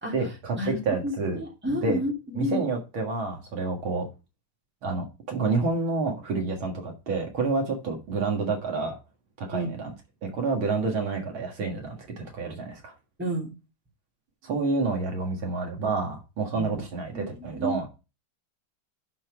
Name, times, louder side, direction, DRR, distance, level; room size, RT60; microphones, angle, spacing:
voice 1, 0.1-1.4 1.8-2.0 2.3-4.1 4.8-9.0 9.4-9.9 10.2-12.9 14.4-17.9, right 3 dB, 70° right, 2 dB, 2.5 m, -29 dB
voice 2, 1.0-2.7 9.5-9.7 13.2-13.5 16.6-16.8 17.1-17.8, equal, 5° right, -1 dB, 2.3 m, -31 dB
11.0 x 4.4 x 4.7 m, 0.30 s
omnidirectional pair, 2.3 m